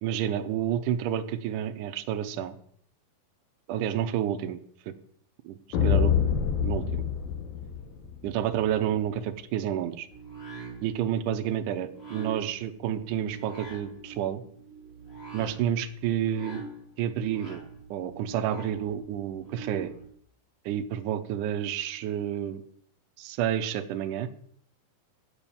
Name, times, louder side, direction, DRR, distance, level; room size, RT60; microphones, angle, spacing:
voice 1, 0.0-2.6 3.7-4.6 5.4-6.1 6.6-7.1 8.2-10.1 10.8-14.4 15.3-16.6 17.0-17.6 17.9-19.9 20.7-22.6 23.2-24.3, right 10 dB, 75° right, 10 dB, 2.0 m, -30 dB
sound 1, 5.7-8.3, left 8 dB, 80° left, 3.2 m, -26 dB
sound 2, 10.1-20.1, right 4 dB, 15° left, 4.3 m, -44 dB
7.4 x 7.2 x 6.9 m, 0.63 s
omnidirectional pair, 4.2 m